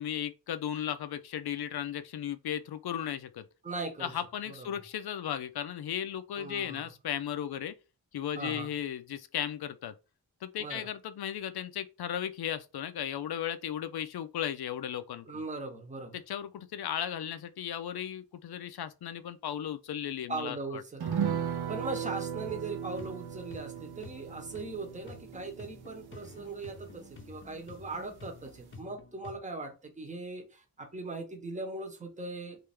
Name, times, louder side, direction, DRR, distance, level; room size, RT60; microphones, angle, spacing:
voice 1, 0.0-3.4 4.0-7.7 8.1-9.9 10.4-15.4 16.1-20.8, left 10 dB, 80° left, 0.5 m, -36 dB
voice 2, 3.6-4.2 4.5-4.8 6.4-6.9 8.3-8.7 10.6-10.9 15.2-16.2 20.3-32.6, right 3 dB, 20° right, 0.8 m, -40 dB
sound 1, 21.0-27.8 28.1-28.2 28.5-28.7, right 8 dB, 85° right, 0.7 m, -37 dB
sound 2, 22.5-29.4, left 4 dB, 35° left, 0.7 m, -51 dB
3.3 x 2.6 x 3.3 m
wide cardioid pair, 130°, 37 cm